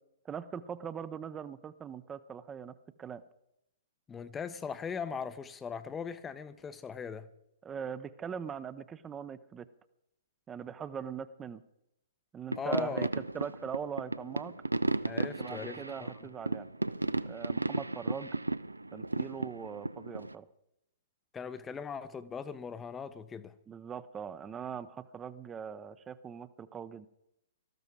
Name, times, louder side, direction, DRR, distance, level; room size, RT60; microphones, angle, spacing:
voice 1, 0.2-3.2 7.6-9.7 10.5-11.6 12.3-14.5 15.2-16.7 17.2-18.3 18.9-20.5 23.7-27.1, right 7 dB, 15° right, 0.7 m, -41 dB
voice 2, 4.1-7.3 12.6-13.1 15.0-16.1 21.3-23.5, left 6 dB, 15° left, 0.8 m, -39 dB
sound 1, 12.5-20.3, right 2 dB, 85° right, 0.5 m, -34 dB
19.0 x 14.0 x 4.7 m
figure-of-eight pair, 115°, 0 cm